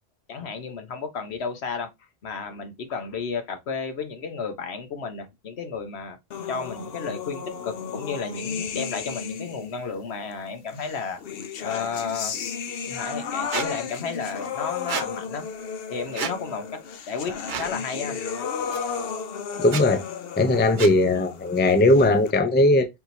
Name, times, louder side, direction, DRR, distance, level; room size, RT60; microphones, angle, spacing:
voice 1, 0.3-1.9 2.2-6.2 6.5-11.2 11.6-12.4 12.8-15.4 15.9-16.8 17.1-18.2, left 5 dB, 85° left, 1.3 m, -32 dB
sound 1, 6.3-9.8 10.8-22.3, left 6 dB, 65° left, 0.9 m, -34 dB
Squeak, 13.5-13.7 14.9-15.1 16.1-16.4 17.5-17.7 18.7-18.8 19.6-19.8 20.8-21.0, right 7 dB, 55° right, 0.7 m, -30 dB
voice 2, 19.6-20.0 20.4-22.9, left 2 dB, 15° left, 0.4 m, -19 dB
4.6 x 3.7 x 2.6 m
omnidirectional pair, 1.1 m